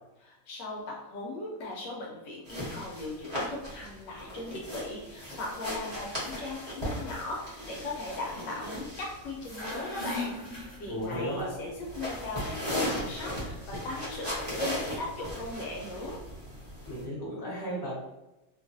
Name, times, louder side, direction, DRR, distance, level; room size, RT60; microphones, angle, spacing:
voice 1, 0.2-16.2, left 2 dB, 75° left, -1 dB, 1.2 m, -38 dB
sound 1, 2.5-17.0, left 1 dB, 20° right, 0.7 m, -37 dB
sound 2, 9.4-11.4, left 2 dB, 35° left, 0.7 m, -39 dB
voice 2, 10.9-11.5 16.9-17.9, equal, 15° left, -7 dB, 1.0 m, -34 dB
3.0 x 2.3 x 2.6 m, 0.96 s
omnidirectional pair, 2.0 m